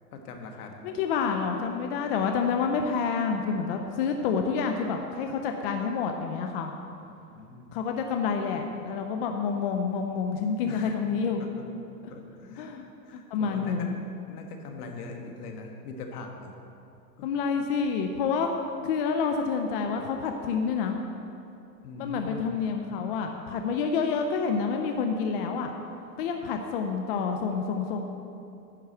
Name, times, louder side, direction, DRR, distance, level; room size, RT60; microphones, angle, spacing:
voice 1, 0.1-1.0 7.0-7.7 10.7-10.9 11.4-11.5 12.1-12.7 13.0-13.9 14.3-16.5 17.2-17.3 21.8-22.4, left 3 dB, 65° left, 3 dB, 1.6 m, -41 dB
voice 2, 0.8-6.7 7.7-11.4 12.6-14.0 17.2-18.5 18.8-21.0 22.0-25.7 26.2-28.0, left 5 dB, 35° left, 4 dB, 0.5 m, -28 dB
10.5 x 4.7 x 7.8 m, 2.7 s
hypercardioid pair, 140°, 49 cm